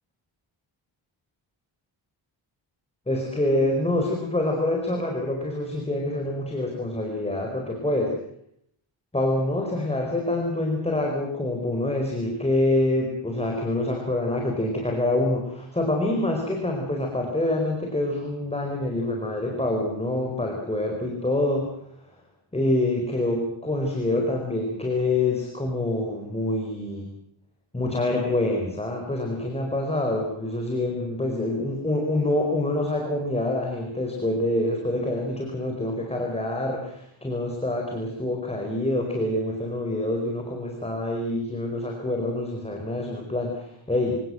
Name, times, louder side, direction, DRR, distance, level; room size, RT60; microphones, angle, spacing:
voice 1, 3.1-8.2 9.1-21.7 22.5-27.1 27.7-44.2, left 1 dB, 10° left, 1 dB, 4.6 m, -26 dB
26.5 x 18.0 x 7.7 m, 0.71 s
wide cardioid pair, 145°, 49 cm